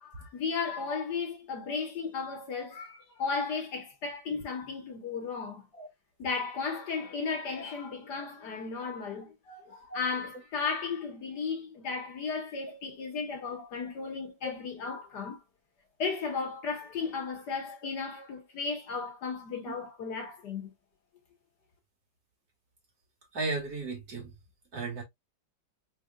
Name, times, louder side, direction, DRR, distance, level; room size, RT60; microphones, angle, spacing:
voice 1, 0.0-5.6 6.2-15.4 16.0-20.7, left 5 dB, 65° left, 1.7 m, -35 dB
voice 2, 23.3-24.3 24.7-25.0, right 3 dB, 50° right, 2.3 m, -35 dB
4.5 x 3.4 x 2.3 m
omnidirectional pair, 2.0 m